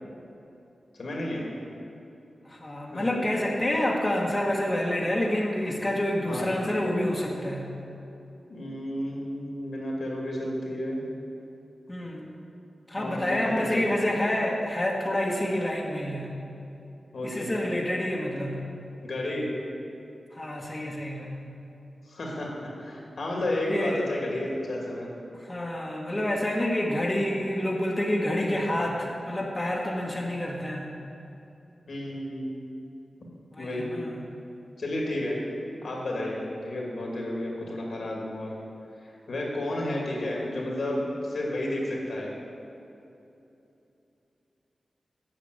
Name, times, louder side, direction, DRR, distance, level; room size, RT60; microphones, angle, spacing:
voice 1, 1.0-1.5 2.9-3.2 6.3-6.7 8.5-11.0 12.9-14.0 17.1-17.5 19.1-19.5 22.1-25.1 31.9-32.5 33.6-34.0 34.8-35.4 35.8-38.5 39.0-42.3, left 1 dB, 75° left, -2 dB, 2.4 m, -32 dB
voice 2, 2.4-7.7 11.9-12.3 12.9-16.3 17.2-18.6 20.3-21.3 23.7-24.0 25.3-30.9 33.5-34.2, left 1 dB, 25° left, -2 dB, 1.5 m, -28 dB
8.7 x 5.9 x 7.9 m, 2.8 s
cardioid pair, 55°, 0 cm